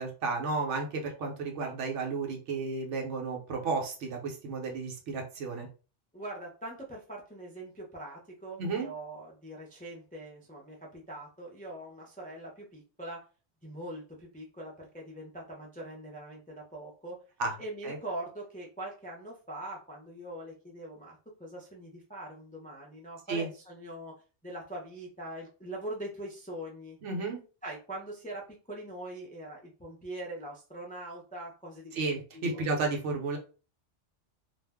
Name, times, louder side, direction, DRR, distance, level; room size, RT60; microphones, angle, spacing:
voice 1, 0.0-5.7 8.6-8.9 17.4-17.5 17.8-18.0 23.3-23.5 27.0-27.4 31.9-33.4, right 3 dB, 75° right, 1 dB, 1.1 m, -32 dB
voice 2, 6.1-13.2 13.6-17.2 17.6-24.1 24.4-27.0 27.6-32.1 32.3-32.6, right 1 dB, 15° left, -2 dB, 0.3 m, -42 dB
2.4 x 2.1 x 3.4 m, 0.35 s
omnidirectional pair, 1.2 m